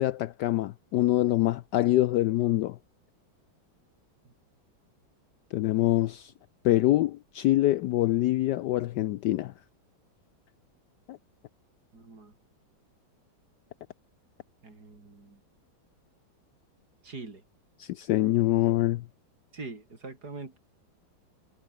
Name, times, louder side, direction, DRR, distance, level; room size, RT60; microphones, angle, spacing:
voice 1, 0.0-2.8 5.5-6.3 6.6-9.5 11.1-11.2 17.8-19.0, left 15 dB, 75° left, 1.0 m, -25 dB
voice 2, 11.9-12.3 14.6-15.4 17.0-17.4 19.5-20.6, right 3 dB, 50° right, 4.5 m, -43 dB
omnidirectional pair, 2.2 m